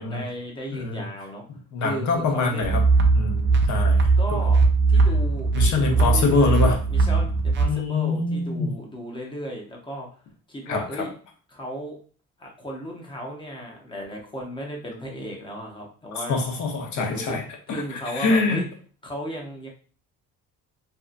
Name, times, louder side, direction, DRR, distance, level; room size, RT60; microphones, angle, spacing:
voice 1, 0.0-1.4 1.8-2.8 4.2-4.6 4.9-10.1 10.5-11.1 11.5-12.0 12.4-16.4 17.0-17.4 17.7-18.7 19.0-19.7, equal, 15° left, -1 dB, 0.7 m, -35 dB
voice 2, 0.7-1.1 1.7-2.8 3.1-4.4 5.5-6.8 7.6-8.7 10.7-11.1 16.1-17.8 18.1-18.6, left 3 dB, 55° left, 2 dB, 0.8 m, -25 dB
sound 1, 2.6-7.6, right 4 dB, 35° right, 0.4 m, -20 dB
2.7 x 2.3 x 2.4 m, 0.41 s
cardioid pair, 120°, 34 cm